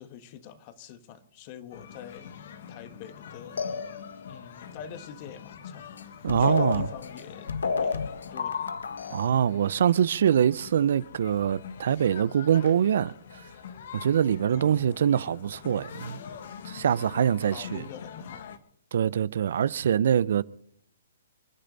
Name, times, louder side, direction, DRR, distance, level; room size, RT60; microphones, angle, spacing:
voice 1, 0.0-2.4 2.7-3.9 4.3-7.5 7.8-8.7 9.3-9.5 14.5-15.0 17.1-17.2 17.5-18.4, left 8 dB, 35° left, 1.7 m, -45 dB
sound 1, 1.7-18.6, left 7 dB, 60° left, 1.8 m, -45 dB
sound 2, 3.6-4.4 6.0-6.1 6.3-9.3, left 5 dB, 85° left, 1.2 m, -30 dB
voice 2, 6.2-6.9 9.1-13.1 13.9-16.2 16.6-17.8 18.9-20.4, right 9 dB, 65° right, 0.6 m, -24 dB
29.5 x 10.0 x 4.1 m
hypercardioid pair, 145°, 0 cm